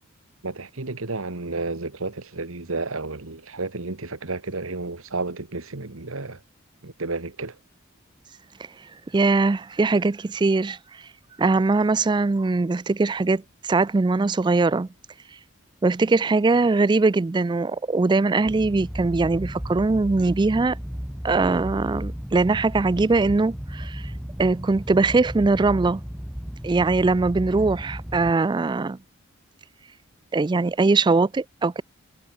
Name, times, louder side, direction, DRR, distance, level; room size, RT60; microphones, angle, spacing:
voice 1, 0.4-6.4 6.8-7.6, right 3 dB, 75° right, 1.6 m, -31 dB
voice 2, 9.1-10.8 11.4-14.9 15.8-20.8 21.2-24.0 24.4-26.0 26.6-29.0 30.3-31.8, right 3 dB, 20° right, 0.3 m, -21 dB
sound 1, 18.5-28.3, equal, 5° right, 0.8 m, -34 dB
head